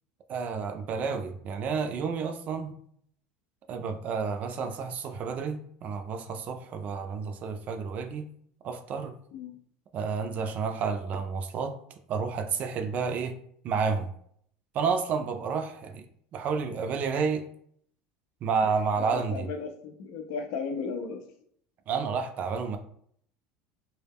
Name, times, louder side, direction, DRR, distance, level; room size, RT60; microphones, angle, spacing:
voice 1, 0.3-2.7 3.7-8.3 8.6-9.1 9.9-11.7 12.1-13.3 13.6-14.1 14.7-16.1 16.3-17.4 18.4-19.5 21.9-22.8, right 5 dB, 45° right, 7 dB, 0.4 m, -30 dB
voice 2, 19.1-21.2, left 5 dB, 70° left, 5 dB, 0.5 m, -35 dB
2.2 x 2.0 x 3.4 m, 0.65 s
supercardioid pair, 110°, 4 cm